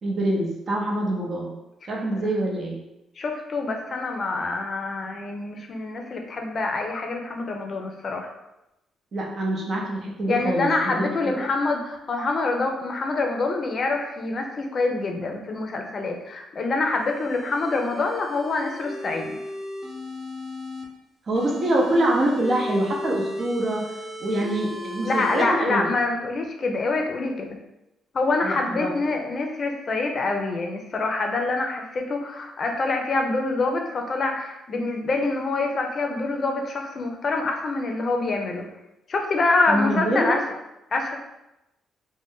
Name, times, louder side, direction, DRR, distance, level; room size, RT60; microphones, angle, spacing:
voice 1, 0.0-1.5 1.9-2.8 9.1-11.5 21.3-23.8 24.2-25.9 28.4-28.9 39.7-40.3, right 1 dB, 50° right, -2 dB, 0.7 m, -25 dB
voice 2, 3.2-8.3 10.3-19.3 25.0-27.6 28.1-38.7 39.1-40.4 40.9-41.2, left 3 dB, 45° left, 3 dB, 0.5 m, -26 dB
sound 1, 16.9-20.8 21.3-25.4, left 1 dB, 5° right, 0.9 m, -35 dB
2.5 x 2.1 x 3.6 m, 0.91 s
cardioid pair, 90°, 0 cm